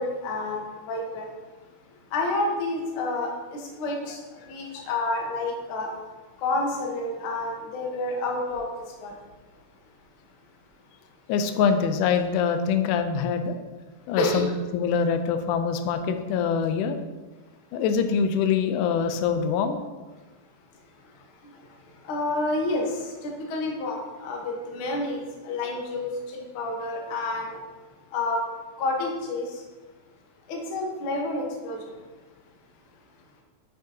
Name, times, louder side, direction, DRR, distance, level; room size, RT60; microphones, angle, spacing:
voice 1, 0.0-1.3 1.6-9.2 9.9-10.0 11.0-11.1 14.0-14.4 20.8-27.6 28.1-28.4 28.8-29.6 30.5-32.0, left 2 dB, 60° left, -1 dB, 1.5 m, -30 dB
voice 2, 11.3-13.6 14.1-14.5 14.7-17.0 17.7-19.8, left 6 dB, 80° left, 8 dB, 2.1 m, -24 dB
7.6 x 6.4 x 2.8 m, 1.3 s
omnidirectional pair, 3.6 m